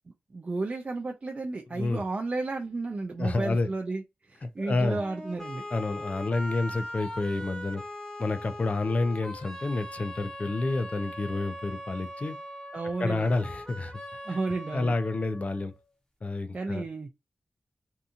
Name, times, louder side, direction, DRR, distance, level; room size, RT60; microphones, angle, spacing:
voice 1, 0.3-4.0 4.3-5.6 12.7-13.3 14.3-14.9 16.5-17.1, right 3 dB, 40° right, 0.4 m, -32 dB
voice 2, 1.7-2.0 3.2-3.7 4.4-5.0 5.7-7.8 8.2-12.4 13.0-13.9 14.3-14.4 14.7-15.7 16.2-16.8, left 2 dB, 45° left, 0.4 m, -29 dB
sound 1, 4.8-15.8, equal, 20° left, 0.9 m, -41 dB
2.7 x 2.4 x 2.4 m
wide cardioid pair, 105°, 3 cm